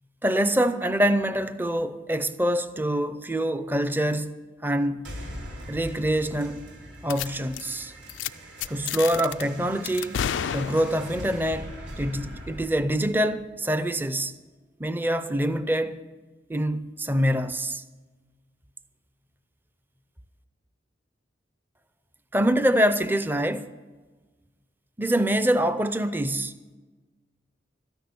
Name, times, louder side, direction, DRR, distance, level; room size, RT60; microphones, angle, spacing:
voice 1, 0.2-4.3 4.6-5.1 5.7-6.7 7.0-7.9 8.7-10.2 10.5-14.3 14.8-16.0 16.5-17.8 22.3-23.7 25.0-26.5, equal, 10° right, 0.5 m, -25 dB
sound 1, 5.0-14.1, equal, 80° right, 3.5 m, -42 dB
sound 2, 7.1-7.3 7.5-7.8 8.1-8.3 8.6-9.4 9.9-11.2, left 9 dB, 90° left, 0.4 m, -30 dB
13.0 x 10.5 x 7.0 m
head